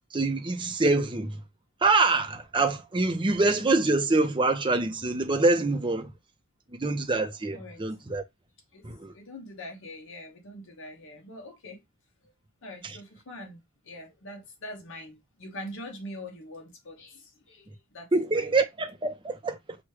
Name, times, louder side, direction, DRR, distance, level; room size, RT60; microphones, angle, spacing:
voice 1, 0.1-1.4 1.8-6.1 6.7-8.2 8.8-9.1 12.8-13.0 18.1-19.6, right 3 dB, 20° right, 0.6 m, -25 dB
voice 2, 8.7-11.8 12.6-18.5, left 1 dB, 60° left, 0.9 m, -43 dB
6.0 x 2.3 x 3.1 m
head